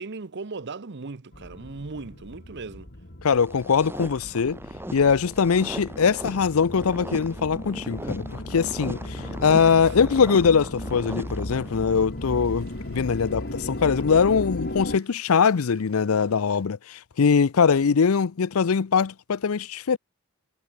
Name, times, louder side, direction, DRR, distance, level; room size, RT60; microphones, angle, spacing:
voice 1, 0.0-2.9 9.9-10.0, right 4 dB, 55° right, 0.8 m, -37 dB
sound 1, 1.3-15.0, left 1 dB, 50° left, 2.8 m, -36 dB
voice 2, 3.2-4.6 4.9-8.2 8.5-20.0, left 6 dB, 75° left, 0.5 m, -22 dB
sound 2, 3.4-12.0, right 1 dB, 10° right, 1.6 m, -38 dB
Toilet flush, 11.8-16.7, right 4 dB, 70° right, 5.8 m, -58 dB
head